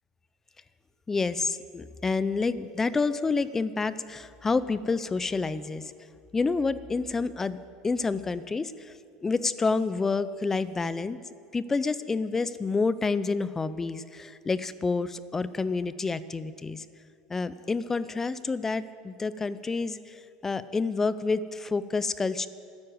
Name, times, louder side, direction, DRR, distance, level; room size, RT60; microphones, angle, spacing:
voice 1, 1.1-5.9 6.3-7.6 7.8-8.9 9.2-11.2 11.5-16.9 17.3-22.5, left 4 dB, 15° left, 15 dB, 0.5 m, -28 dB
13.5 x 9.7 x 7.9 m, 2.4 s
supercardioid pair, 135°, 3 cm